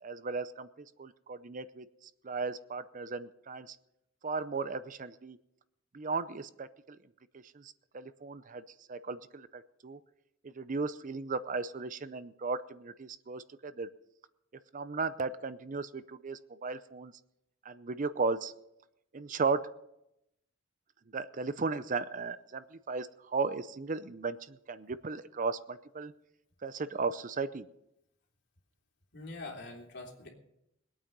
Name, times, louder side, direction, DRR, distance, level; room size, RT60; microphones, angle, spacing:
voice 1, 0.0-0.7 1.0-3.8 4.2-5.4 5.9-7.0 7.3-8.6 8.9-10.0 10.4-13.9 14.7-17.1 17.6-18.5 19.1-19.7 21.1-26.1 26.6-27.7, right 4 dB, 40° right, 14 dB, 0.6 m, -36 dB
voice 2, 29.1-30.3, left 2 dB, 60° left, 0 dB, 3.3 m, -44 dB
21.5 x 8.8 x 5.4 m, 0.82 s
head